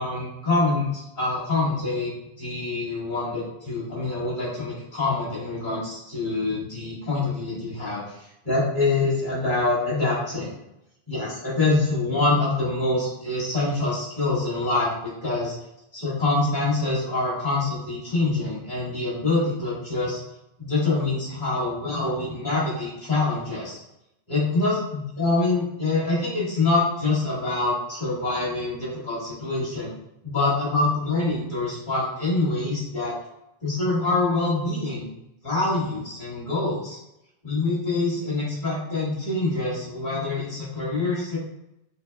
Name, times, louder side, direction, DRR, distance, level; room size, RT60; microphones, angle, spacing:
voice 1, 0.0-2.1 2.4-8.0 8.4-10.5 11.1-15.5 15.9-20.2 20.6-23.8 24.3-29.9 30.2-33.2 33.6-35.1 35.4-37.0 37.4-41.4, left 3 dB, 50° left, -11 dB, 1.7 m, -25 dB
4.5 x 3.8 x 2.2 m, 0.85 s
omnidirectional pair, 1.0 m